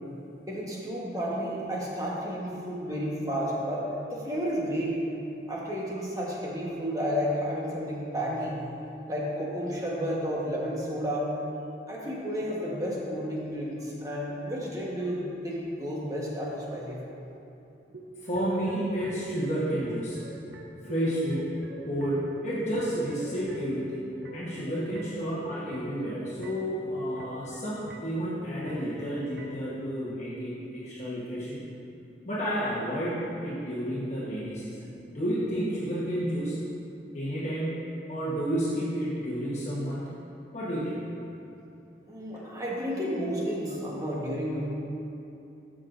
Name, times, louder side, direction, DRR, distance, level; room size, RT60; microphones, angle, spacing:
voice 1, 0.5-3.8 4.1-5.0 5.5-8.6 9.1-11.3 11.9-17.0 42.1-44.7, equal, 20° right, -5 dB, 1.2 m, -31 dB
sound 1, 17.9-29.7, right 1 dB, 75° right, 0.6 m, -45 dB
voice 2, 18.2-20.2 20.8-21.5 21.9-31.6 32.2-36.6 37.1-37.8 38.1-40.1 40.5-41.0 42.4-42.6, equal, 40° left, -9 dB, 1.2 m, -31 dB
13.0 x 6.3 x 2.6 m, 2.8 s
head